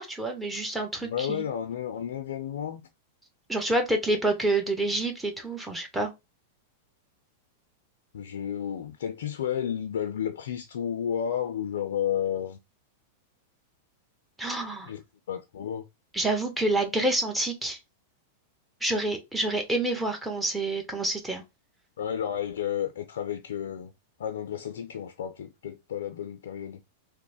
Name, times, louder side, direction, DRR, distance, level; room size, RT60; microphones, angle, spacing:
voice 1, 0.0-1.4 3.5-6.1 14.4-14.9 16.1-17.8 18.8-21.4, right 2 dB, 10° right, 1.0 m, -28 dB
voice 2, 1.0-2.8 8.1-12.6 14.9-15.8 22.0-23.9 24.2-26.8, left 9 dB, 80° left, 0.5 m, -32 dB
3.0 x 2.1 x 4.1 m
hypercardioid pair, 120°, 0 cm